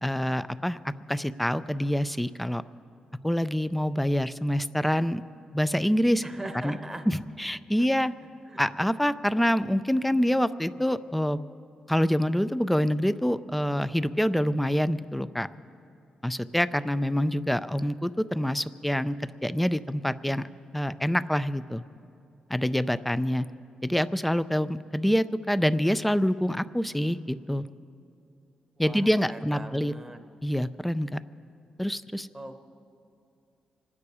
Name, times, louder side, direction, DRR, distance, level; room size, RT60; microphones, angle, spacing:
voice 1, 0.0-2.6 3.2-5.2 5.5-6.2 6.6-6.8 7.1-8.1 8.6-11.4 11.9-15.5 16.2-19.2 19.4-20.4 20.7-21.8 22.5-23.5 23.8-27.6 28.8-29.9 30.4-31.2 31.8-32.3, equal, 5° left, 14 dB, 0.4 m, -26 dB
voice 2, 6.2-7.1 7.8-7.9 8.5-8.6 28.8-30.2 32.3-32.6, right 1 dB, 10° right, 7 dB, 0.9 m, -40 dB
26.5 x 9.7 x 4.9 m, 2.5 s
wide cardioid pair, 135°, 2 cm